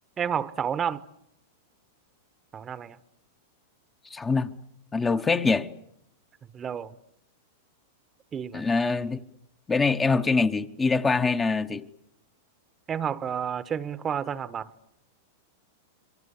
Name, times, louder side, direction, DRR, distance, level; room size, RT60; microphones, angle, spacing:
voice 1, 0.2-1.0 2.5-3.0 6.5-7.0 8.3-8.6 12.9-14.7, right 8 dB, 25° right, 1.0 m, -30 dB
voice 2, 4.1-4.5 4.9-5.7 8.5-9.2 9.7-11.9, left 4 dB, 15° left, 1.0 m, -24 dB
27.5 x 24.0 x 8.3 m
hypercardioid pair, 105°, 0 cm